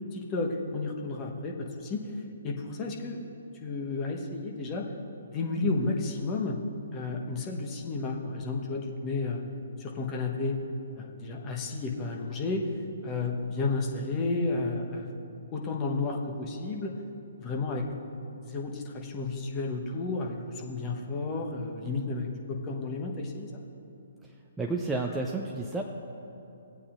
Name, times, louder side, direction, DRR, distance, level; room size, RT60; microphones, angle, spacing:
voice 1, 0.1-3.2 3.6-4.9 5.2-6.6 6.9-9.4 9.8-10.6 11.0-12.7 13.0-15.2 15.5-16.9 17.4-17.9 18.4-23.6, left 3 dB, 25° left, 0 dB, 1.1 m, -32 dB
voice 2, 24.2-25.8, right 3 dB, 5° right, -1 dB, 0.5 m, -32 dB
17.5 x 8.4 x 2.6 m, 2.9 s
figure-of-eight pair, 130°, 0 cm